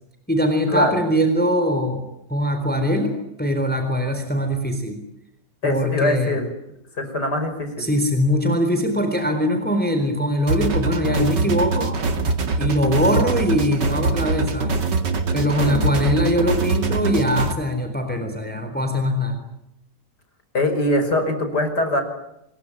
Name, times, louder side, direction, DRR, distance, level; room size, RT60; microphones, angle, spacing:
voice 1, 0.3-2.0 2.3-5.0 5.6-6.4 7.8-12.0 12.6-14.8 15.3-19.4, equal, 5° left, 6 dB, 3.8 m, -22 dB
voice 2, 5.6-6.5 7.0-7.9 15.4-15.9 20.5-22.0, left 1 dB, 65° left, 7 dB, 6.2 m, -22 dB
sound 1, 10.5-17.5, right 3 dB, 75° right, 2.7 m, -23 dB
26.5 x 22.0 x 10.0 m, 0.84 s
omnidirectional pair, 1.9 m